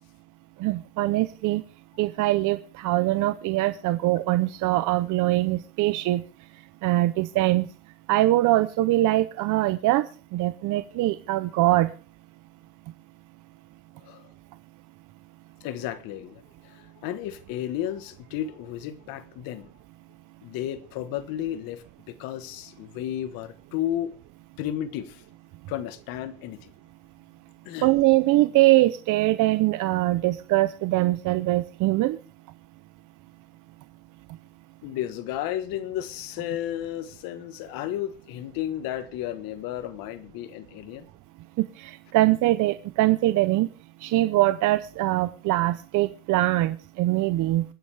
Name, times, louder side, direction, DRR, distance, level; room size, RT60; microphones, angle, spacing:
voice 1, 0.6-1.6 2.0-6.2 6.8-7.7 8.1-10.0 10.3-11.9 27.8-32.2 41.6-43.7 44.0-47.6, right 17 dB, 60° right, 0.7 m, -22 dB
voice 2, 15.6-19.7 20.4-24.1 24.6-25.2 25.7-26.7 27.6-27.9 34.8-41.0, left 12 dB, 80° left, 1.5 m, -33 dB
25.5 x 10.0 x 3.4 m
cardioid pair, 165°, 34 cm